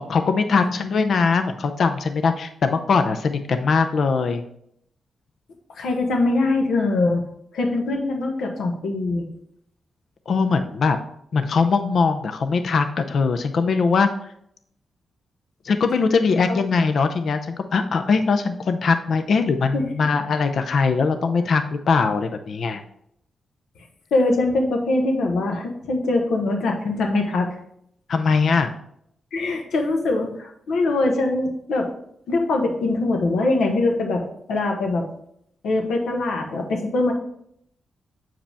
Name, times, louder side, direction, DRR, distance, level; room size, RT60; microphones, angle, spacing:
voice 1, 0.0-4.4 10.3-11.0 11.3-14.1 15.6-22.8 28.1-28.7, left 4 dB, 65° left, 8 dB, 0.5 m, -21 dB
voice 2, 5.7-7.2 7.5-9.3 19.7-19.8 24.1-27.5 29.3-31.9 32.3-34.2 34.5-35.0 35.6-37.1, left 2 dB, 85° left, 2 dB, 1.1 m, -22 dB
7.5 x 4.8 x 3.4 m, 0.71 s
cardioid pair, 60°, 0 cm